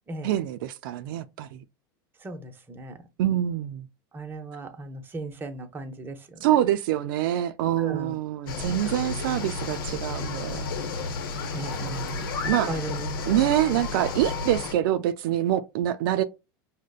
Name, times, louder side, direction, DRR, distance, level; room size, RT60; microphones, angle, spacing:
voice 1, 0.2-1.6 3.2-3.9 6.4-10.6 11.8-12.7 13.3-16.2, right 12 dB, 70° right, 0.4 m, -26 dB
voice 2, 2.2-2.9 4.1-6.4 7.8-8.1 11.5-11.8 12.4-13.1, right 2 dB, 20° right, 0.7 m, -36 dB
sound 1, 8.5-14.7, left 4 dB, 80° left, 0.8 m, -32 dB
5.0 x 2.1 x 2.3 m
supercardioid pair, 125°, 12 cm